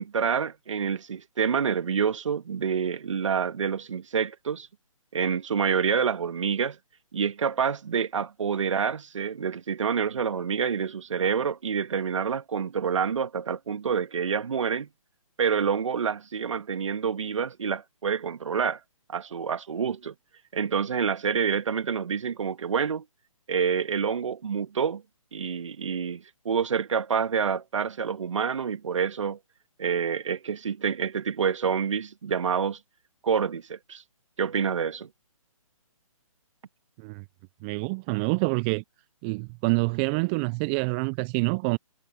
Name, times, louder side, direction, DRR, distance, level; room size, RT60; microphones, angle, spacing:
voice 1, 0.0-4.7 5.1-6.8 7.1-14.9 15.4-18.8 19.1-20.1 20.5-23.0 23.5-25.0 25.3-29.4 29.8-32.8 33.2-34.0 34.4-35.1, right 6 dB, 60° right, 1.9 m, -27 dB
voice 2, 37.6-38.8 39.2-41.8, right 30 dB, 15° right, 0.5 m, -26 dB
figure-of-eight pair, 140°, 18 cm